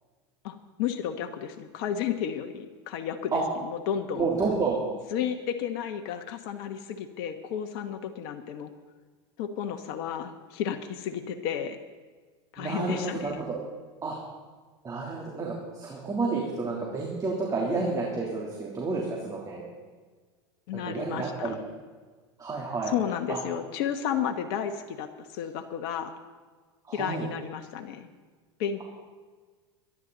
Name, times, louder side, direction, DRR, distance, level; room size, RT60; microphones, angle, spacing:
voice 1, 0.4-3.3 3.6-4.3 5.1-8.7 9.4-11.8 12.5-13.4 20.7-21.6 22.9-26.1 26.9-28.1 28.6-28.8, left 8 dB, 60° left, 6 dB, 1.3 m, -32 dB
voice 2, 4.1-4.8 12.6-13.6 14.0-14.2 14.8-19.6 20.7-21.5 22.4-22.9 23.3-23.4 26.9-27.3, right 4 dB, 25° right, -3 dB, 3.2 m, -30 dB
23.0 x 11.0 x 4.1 m, 1.4 s
hypercardioid pair, 100°, 15 cm